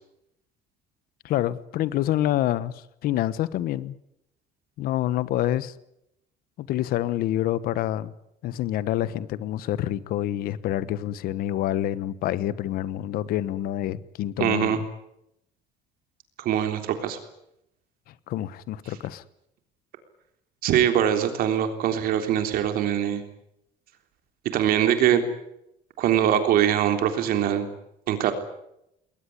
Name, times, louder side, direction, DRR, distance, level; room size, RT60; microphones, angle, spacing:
voice 1, 1.2-4.0 4.8-5.7 6.6-8.1 8.4-14.8 18.3-19.2, left 13 dB, 60° left, 17 dB, 1.2 m, -27 dB
voice 2, 14.4-14.8 16.4-17.2 20.6-23.2 24.5-25.2 26.0-27.7 28.1-28.3, right 10 dB, 60° right, 7 dB, 3.5 m, -22 dB
21.5 x 18.5 x 9.9 m, 0.80 s
cardioid pair, 160°, 18 cm